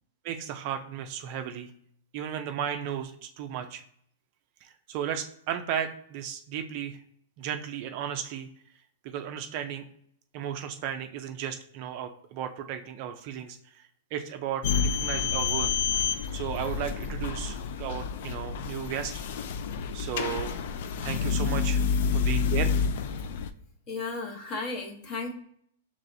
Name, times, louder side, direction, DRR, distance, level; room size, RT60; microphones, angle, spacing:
voice 1, 0.2-1.7 2.1-3.8 4.6-7.0 7.4-8.5 9.0-9.8 10.3-15.7 16.3-19.1 19.9-20.5 21.0-21.8 22.1-22.8, right 9 dB, 35° right, 6 dB, 0.4 m, -34 dB
sound 1, 14.6-23.5, left 6 dB, 50° left, 0.3 m, -29 dB
voice 2, 23.9-25.3, left 3 dB, 30° left, 3 dB, 0.9 m, -34 dB
5.5 x 3.0 x 2.6 m, 0.67 s
supercardioid pair, 170°, 0 cm